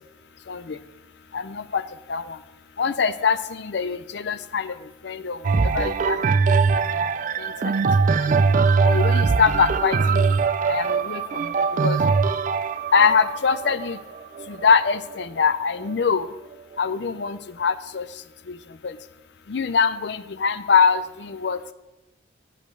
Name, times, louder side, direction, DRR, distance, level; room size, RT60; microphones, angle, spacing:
voice 1, 0.5-0.8 1.3-1.8 2.1-2.4 2.8-4.7 5.0-6.2 6.8-6.9 7.4-7.7 8.2-8.4 8.8-10.3 10.7-11.5 11.8-12.0 12.9-14.0 14.5-16.3 16.8-18.0 18.5-18.6 18.8-19.0 19.5-21.7, left 5 dB, 60° left, 13 dB, 0.5 m, -23 dB
sound 1, 5.4-15.2 15.9-16.0, right 4 dB, 40° right, 0.3 m, -21 dB
8.5 x 5.3 x 7.6 m, 1.0 s
head